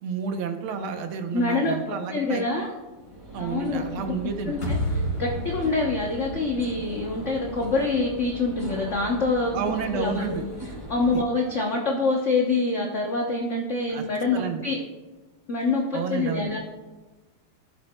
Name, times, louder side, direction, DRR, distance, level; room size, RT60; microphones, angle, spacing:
voice 1, 0.0-2.4 3.3-4.6 9.5-10.4 11.1-11.2 13.9-14.0 14.3-14.6 15.9-16.5, right 6 dB, 80° right, 6 dB, 1.7 m, -30 dB
voice 2, 1.3-2.7 3.4-3.9 4.5-9.5 9.9-10.5 10.9-14.8 15.5-16.6, left 3 dB, 55° left, -1 dB, 0.8 m, -26 dB
sound 1, 2.5-11.1, equal, 15° right, 2.6 m, -39 dB
sound 2, 4.6-7.7, equal, 40° left, 2.9 m, -31 dB
15.0 x 7.4 x 2.2 m, 1.2 s
omnidirectional pair, 2.3 m